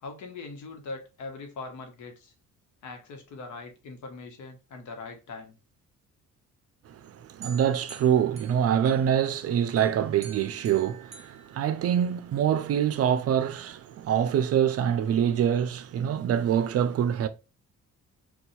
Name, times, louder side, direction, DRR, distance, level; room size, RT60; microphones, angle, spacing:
voice 1, 0.0-2.3 2.8-5.6, left 3 dB, 75° left, 1.0 m, -41 dB
sound 1, 7.4-9.4 9.8-12.3, right 5 dB, 20° right, 0.9 m, -49 dB
voice 2, 7.4-17.3, right 9 dB, 55° right, 0.4 m, -25 dB
2.7 x 2.3 x 4.0 m
cardioid pair, 90°, 30 cm